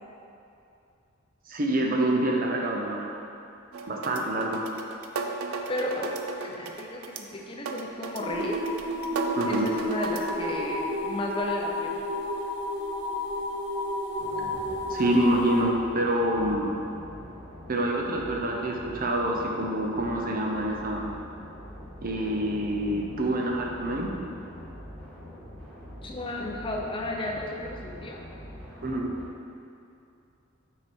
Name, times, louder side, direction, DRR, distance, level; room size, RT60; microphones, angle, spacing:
voice 1, 1.5-3.2 3.9-4.7 9.4-9.7 14.9-16.8 17.7-21.1 22.0-24.2 28.8-29.1, right 1 dB, 45° right, 0 dB, 0.6 m, -26 dB
sound 1, 3.7-10.3, right 4 dB, 85° right, 0.5 m, -36 dB
voice 2, 5.7-6.1 6.4-7.0 7.3-8.6 9.5-12.0 26.0-28.2, left 1 dB, 25° left, 0 dB, 0.5 m, -33 dB
sound 2, 8.2-15.6, left 1 dB, 15° right, 1.6 m, -31 dB
sound 3, 14.2-29.2, equal, 5° left, 1.6 m, -44 dB
6.3 x 4.7 x 4.3 m, 2.6 s
head